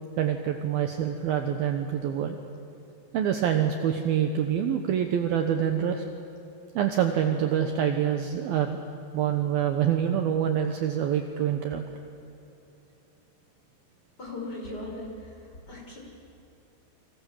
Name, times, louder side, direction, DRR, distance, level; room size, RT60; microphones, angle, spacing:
voice 1, 0.2-2.4 3.1-6.0 6.8-8.8 9.1-11.8, right 9 dB, 70° right, 5 dB, 2.6 m, -26 dB
voice 2, 14.2-15.3 15.7-16.0, left 2 dB, 20° left, -1 dB, 5.9 m, -38 dB
29.5 x 25.5 x 7.4 m, 2.9 s
omnidirectional pair, 5.1 m